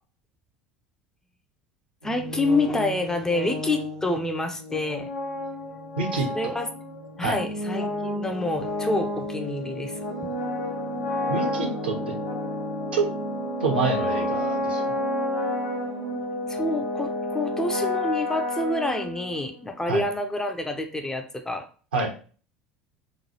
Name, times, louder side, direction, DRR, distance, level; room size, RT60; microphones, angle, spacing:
sound 1, 2.0-19.7, left 1 dB, 90° left, 0.8 m, -30 dB
voice 1, 2.0-5.1 6.3-6.7 7.2-10.0 16.5-21.7, left 2 dB, 10° left, 5 dB, 0.4 m, -28 dB
voice 2, 6.0-6.3 7.2-7.3 11.3-12.1 12.9-13.1 13.6-15.0 19.9-20.0 21.9-22.1, right 3 dB, 75° right, 1 dB, 0.7 m, -27 dB
3.0 x 2.3 x 2.7 m, 0.39 s
figure-of-eight pair, 70°, 5 cm